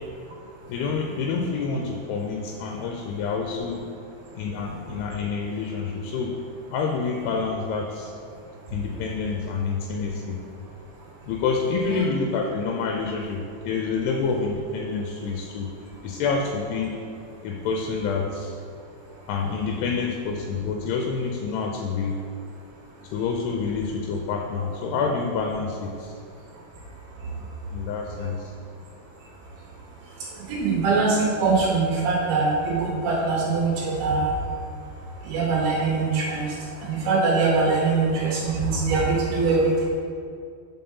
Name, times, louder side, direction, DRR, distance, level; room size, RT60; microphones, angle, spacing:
voice 1, 0.7-3.9 4.4-6.4 6.7-8.1 8.7-10.4 11.3-15.7 16.0-16.9 17.4-18.6 19.3-22.2 23.1-26.1 27.4-28.4, left 4 dB, 80° left, 1 dB, 2.5 m, -28 dB
voice 2, 30.3-34.3 35.2-39.9, right 3 dB, 75° right, -5 dB, 2.9 m, -23 dB
5.6 x 5.3 x 5.4 m, 2.4 s
omnidirectional pair, 4.8 m